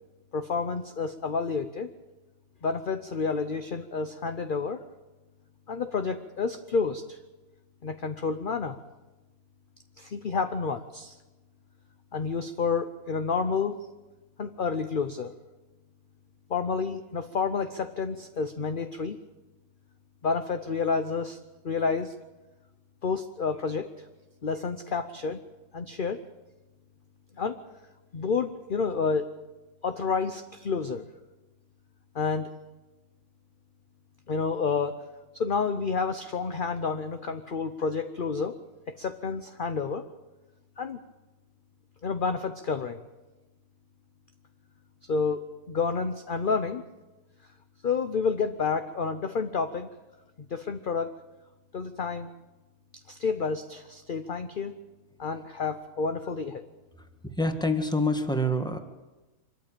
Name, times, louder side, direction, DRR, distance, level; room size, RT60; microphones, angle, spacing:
voice 1, 0.3-1.9 2.6-4.8 5.7-7.2 7.8-8.8 10.0-11.2 12.1-13.8 14.4-15.3 16.5-19.2 20.2-21.4 21.6-22.1 23.0-23.9 24.4-25.4 25.7-26.2 27.4-27.6 28.1-29.3 29.8-31.1 32.1-32.5 34.3-35.0 35.3-38.6 39.0-40.1 40.8-41.0 42.0-43.0 45.1-46.8 47.8-49.9 50.5-51.2 51.7-52.3 53.1-54.8 55.2-56.6, left 5 dB, 45° left, 9 dB, 0.8 m, -29 dB
voice 2, 57.0-58.8, left 1 dB, 5° left, 6 dB, 1.5 m, -27 dB
25.0 x 13.5 x 8.9 m, 1.1 s
omnidirectional pair, 1.5 m